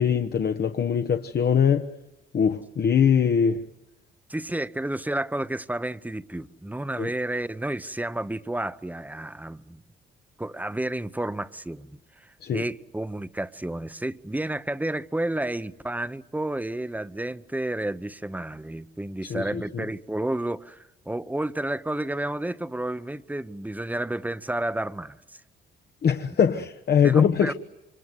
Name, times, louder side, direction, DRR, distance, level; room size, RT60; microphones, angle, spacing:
voice 1, 0.0-1.9 2.3-3.6 7.0-7.1 12.4-12.6 19.3-19.8 26.0-27.5, left 7 dB, 55° left, 1.1 m, -22 dB
voice 2, 4.3-9.8 10.4-25.4 27.0-27.5, right 1 dB, 10° right, 0.9 m, -31 dB
28.0 x 24.5 x 8.1 m
cardioid pair, 90°, 20 cm